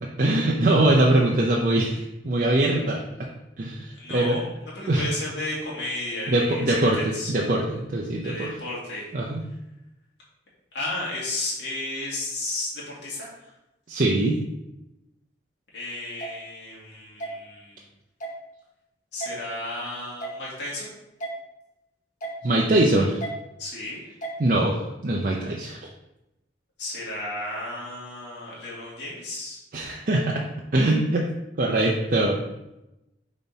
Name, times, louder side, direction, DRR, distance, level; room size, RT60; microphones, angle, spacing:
voice 1, 0.0-3.0 3.6-4.4 4.9-5.1 6.3-8.5 9.1-9.4 13.9-14.4 22.4-23.2 24.4-25.8 29.7-30.4 30.7-31.3 31.6-32.4, right 1 dB, 50° right, -2 dB, 0.6 m, -22 dB
voice 2, 4.0-7.3 8.2-9.0 10.7-13.5 15.7-17.8 19.1-20.9 23.6-24.0 26.8-29.6, left 2 dB, 70° left, -6 dB, 2.1 m, -33 dB
sound 1, 16.2-16.3 17.2-17.3 18.2-18.4 19.2-19.3 20.2-20.4 21.2-21.3 22.2-22.4 23.2-23.3 24.2-24.4, right 3 dB, 45° left, 1.0 m, -33 dB
5.5 x 4.1 x 4.0 m, 0.91 s
head